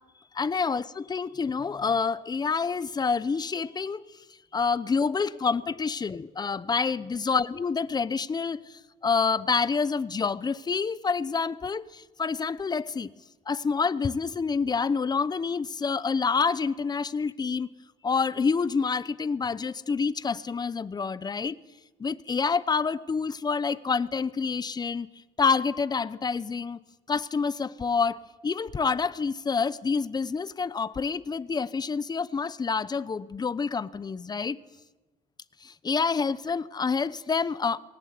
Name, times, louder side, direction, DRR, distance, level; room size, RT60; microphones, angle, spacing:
voice 1, 0.3-4.0 4.5-13.1 13.5-17.7 18.0-21.6 22.0-25.1 25.4-26.8 27.1-34.6 35.6-37.8, left 5 dB, 25° left, 0.8 m, -27 dB
19.5 x 18.0 x 9.5 m
cardioid pair, 110°, 17 cm